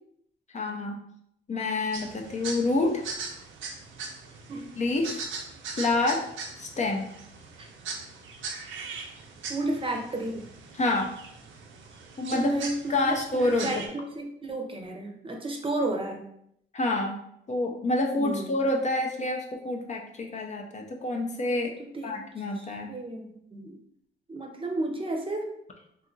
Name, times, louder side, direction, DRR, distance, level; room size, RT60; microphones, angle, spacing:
voice 1, 0.5-1.0 1.5-3.0 4.8-5.2 5.8-6.2 6.6-7.1 10.7-11.1 12.2-12.5 12.9-13.7 16.7-17.2 17.5-21.8 22.0-22.9, left 2 dB, 35° left, 2 dB, 0.5 m, -27 dB
sound 1, 1.9-13.9, right 4 dB, 75° right, 0.6 m, -40 dB
voice 2, 9.5-10.4 12.3-13.2 13.6-16.3 18.2-18.4 21.8-22.2 22.6-23.8 24.3-25.5, right 2 dB, 25° right, 2 dB, 0.7 m, -32 dB
2.8 x 2.4 x 3.8 m, 0.72 s
cardioid pair, 90°, 20 cm